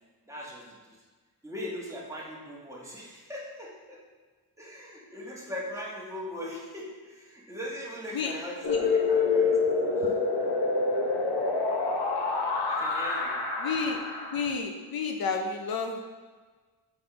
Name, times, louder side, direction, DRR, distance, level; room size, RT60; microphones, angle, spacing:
voice 1, 0.3-1.0 1.4-4.0 4.6-9.6 12.7-13.4, left 1 dB, 10° right, -5 dB, 1.4 m, -40 dB
sound 1, 8.6-14.5, left 4 dB, 85° left, 1.1 m, -27 dB
voice 2, 13.6-14.0 14.3-16.0, left 5 dB, 65° left, 5 dB, 0.6 m, -31 dB
6.0 x 5.3 x 3.9 m, 1.4 s
wide cardioid pair, 140°, 39 cm